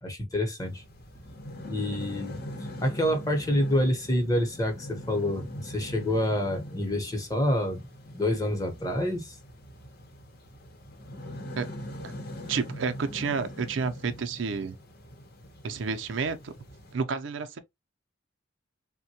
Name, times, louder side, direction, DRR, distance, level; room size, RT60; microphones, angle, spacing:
voice 1, 0.0-0.8 1.6-2.3 2.8-7.9 8.1-9.3, left 1 dB, 20° left, 0.8 m, -27 dB
sound 1, 0.6-16.9, equal, 55° left, 0.8 m, -42 dB
voice 2, 12.5-14.8 15.6-16.5 16.9-17.6, right 5 dB, 80° right, 0.5 m, -30 dB
3.5 x 2.1 x 2.7 m
head